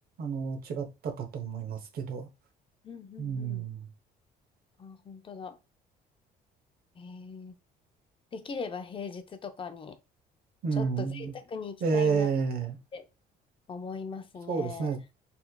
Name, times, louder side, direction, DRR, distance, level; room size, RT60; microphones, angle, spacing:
voice 1, 0.2-2.3 3.2-3.9 10.6-11.3 11.8-12.8 14.5-15.1, right 5 dB, 65° right, 1.0 m, -30 dB
voice 2, 2.8-3.6 4.8-5.6 7.0-7.5 8.3-10.0 10.7-12.3 12.9-13.1 13.7-14.9, left 5 dB, 30° left, 0.6 m, -40 dB
4.2 x 2.8 x 2.2 m
cardioid pair, 110°, 17 cm